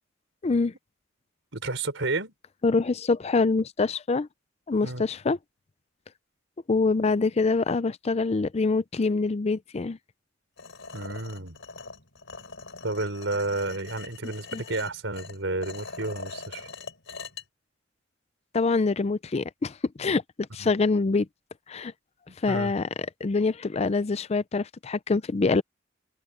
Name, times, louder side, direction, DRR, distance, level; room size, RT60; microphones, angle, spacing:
voice 1, 0.4-0.7 2.6-4.3 4.7-5.4 6.7-10.0 14.5-14.6 18.5-20.2 20.5-21.3 21.7-21.9 22.4-22.9 23.2-25.6, left 3 dB, 35° left, 0.4 m, -25 dB
voice 2, 1.5-2.3 4.8-5.0 10.9-11.6 12.8-16.7 20.6-20.7 22.3-22.7, right 2 dB, 75° right, 4.5 m, -31 dB
sound 1, 10.6-17.4, left 4 dB, 75° left, 4.1 m, -42 dB
head